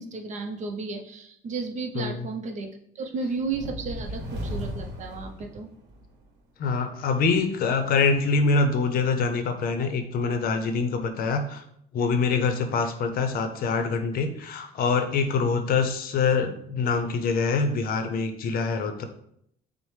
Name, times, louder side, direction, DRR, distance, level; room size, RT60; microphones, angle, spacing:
voice 1, 0.0-2.7 3.0-5.7, right 4 dB, 45° right, 4 dB, 0.6 m, -33 dB
voice 2, 1.9-2.2 6.6-11.6 11.9-19.0, left 4 dB, 60° left, 7 dB, 0.6 m, -25 dB
sound 1, 3.4-6.1, equal, 85° right, 0.8 m, -36 dB
6.1 x 2.1 x 3.2 m, 0.71 s
cardioid pair, 110°, 17 cm